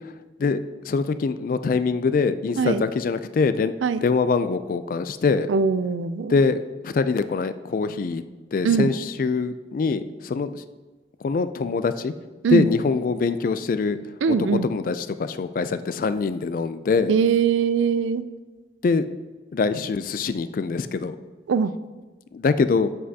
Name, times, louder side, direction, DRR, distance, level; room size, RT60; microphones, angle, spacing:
voice 1, 0.9-3.7 4.0-5.5 6.3-8.2 8.5-10.6 11.2-12.1 12.5-14.0 14.3-14.4 14.6-17.1 18.8-19.1 19.5-21.2 22.3-22.9, left 4 dB, 45° left, 12 dB, 0.3 m, -23 dB
voice 2, 5.5-6.4 8.6-8.9 12.4-12.7 14.2-14.7 17.1-18.2 21.5-21.7, right 6 dB, 90° right, 14 dB, 0.4 m, -21 dB
7.9 x 7.5 x 2.8 m, 1.3 s
head